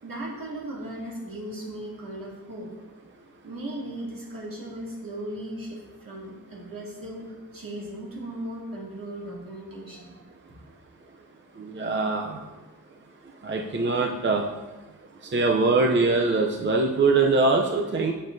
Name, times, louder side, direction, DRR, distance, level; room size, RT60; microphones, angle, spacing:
voice 1, 0.0-2.7 3.4-10.2, right 1 dB, 70° right, -5 dB, 2.3 m, -37 dB
voice 2, 11.6-12.4 13.4-14.4 15.3-18.1, right 3 dB, 30° right, 1 dB, 0.6 m, -22 dB
8.6 x 7.3 x 2.6 m, 1.2 s
wide cardioid pair, 95°, 36 cm